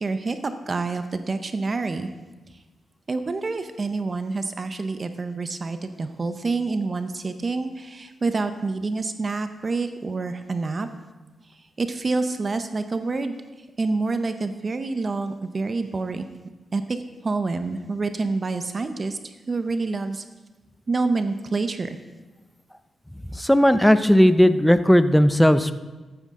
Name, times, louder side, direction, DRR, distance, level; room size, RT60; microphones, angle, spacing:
voice 1, 0.0-2.1 3.1-10.9 11.8-13.3 13.8-16.2 16.7-17.0 17.2-20.2 20.9-22.0, right 3 dB, 40° right, 9 dB, 0.7 m, -27 dB
voice 2, 23.4-25.7, equal, 5° left, 12 dB, 0.6 m, -16 dB
13.5 x 9.5 x 3.7 m, 1.2 s
cardioid pair, 75°, 0 cm